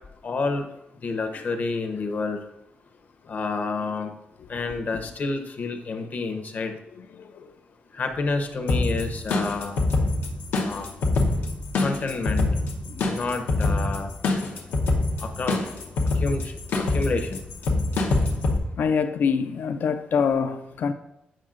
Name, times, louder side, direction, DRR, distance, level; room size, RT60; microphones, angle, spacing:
voice 1, 0.2-0.7 1.0-2.4 3.3-4.1 4.5-6.8 7.9-9.8 10.6-10.9 11.8-12.5 13.1-14.1 15.2-15.6 16.2-16.5 16.8-17.4, left 3 dB, 50° left, 0.8 m, -29 dB
voice 2, 7.1-7.5 12.9-13.0 14.9-15.0 18.8-20.9, left 6 dB, 70° left, 0.4 m, -25 dB
sound 1, 8.7-18.6, left 2 dB, 90° left, 0.9 m, -25 dB
8.7 x 5.5 x 2.5 m
cardioid pair, 95°, 3 cm